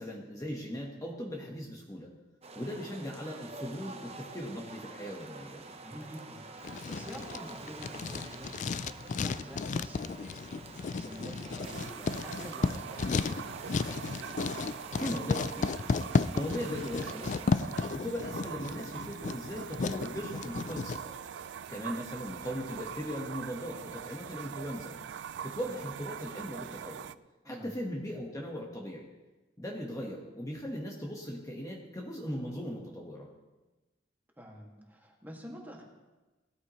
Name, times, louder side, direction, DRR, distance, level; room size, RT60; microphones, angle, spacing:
voice 1, 0.0-2.1 2.5-5.6 15.0-15.7 16.3-17.5 17.9-21.1 21.7-24.9 25.4-27.1 27.4-29.1 29.6-33.3, equal, 20° left, -1 dB, 1.3 m, -38 dB
sound 1, 2.4-17.5, right 3 dB, 35° right, 0.9 m, -47 dB
voice 2, 5.8-8.6 9.2-13.6 27.4-27.7 34.4-35.8, equal, 10° right, -1 dB, 2.0 m, -47 dB
Writing, 6.6-21.0, left 4 dB, 45° left, 0.3 m, -33 dB
sound 2, 11.6-27.1, right 8 dB, 75° right, 0.4 m, -43 dB
17.5 x 13.0 x 3.1 m, 1.1 s
head